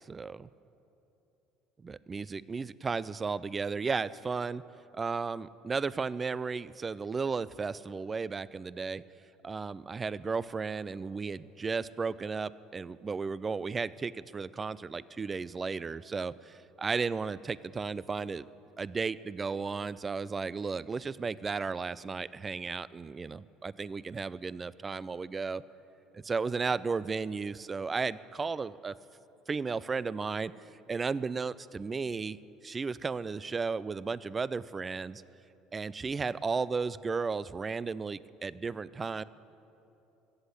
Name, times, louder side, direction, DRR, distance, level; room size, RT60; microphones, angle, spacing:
voice 1, 0.1-0.5 1.8-4.6 5.0-9.0 9.4-18.4 18.8-25.6 26.1-29.0 29.5-30.5 30.9-32.4 32.6-35.2 35.7-39.2, right 4 dB, 25° right, 19 dB, 0.4 m, -34 dB
15.5 x 8.0 x 8.4 m, 2.9 s
hypercardioid pair, 65°, 0 cm